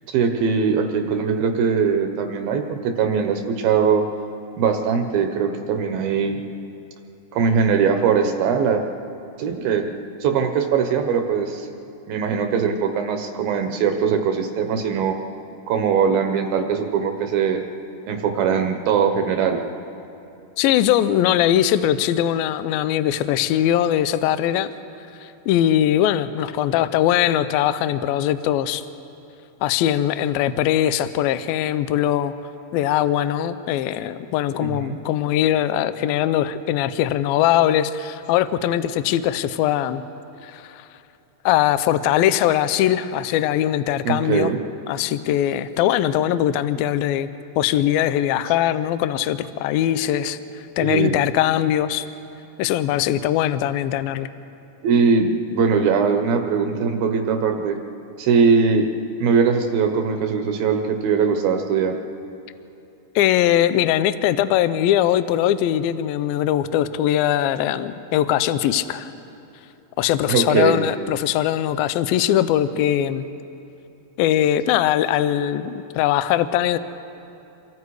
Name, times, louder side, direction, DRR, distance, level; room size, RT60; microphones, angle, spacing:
voice 1, 0.1-4.1 4.6-6.4 7.3-8.8 9.4-9.9 10.2-11.7 12.1-15.2 15.7-17.6 18.1-19.6 34.6-35.0 44.0-44.6 50.8-51.2 54.8-57.8 58.2-58.9 59.2-62.0 70.3-70.8, right 6 dB, 70° right, 5 dB, 2.6 m, -21 dB
voice 2, 20.6-24.7 25.2-28.8 29.6-32.3 32.7-40.0 40.4-40.9 41.5-44.5 44.9-47.3 47.6-52.1 52.6-54.3 63.2-69.1 70.0-73.2 74.2-76.8, left 11 dB, 80° left, 12 dB, 2.2 m, -21 dB
28.0 x 24.0 x 4.8 m, 2.8 s
omnidirectional pair, 4.8 m